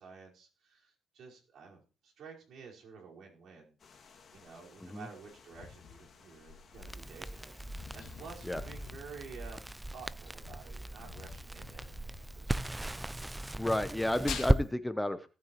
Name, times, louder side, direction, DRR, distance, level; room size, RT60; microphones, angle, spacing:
voice 1, 0.0-12.9, right 5 dB, 70° right, -2 dB, 4.9 m, -51 dB
sound 1, 3.8-9.0, left 5 dB, 50° left, 2.3 m, -59 dB
sound 2, 5.4-13.2 13.4-14.5, left 7 dB, 70° left, 2.4 m, -48 dB
Crackle, 6.8-14.6, right 1 dB, 10° right, 0.4 m, -36 dB
voice 2, 13.6-15.3, left 1 dB, 10° left, 11 dB, 0.9 m, -32 dB
18.0 x 8.9 x 3.1 m, 0.35 s
cardioid pair, 90°, 0 cm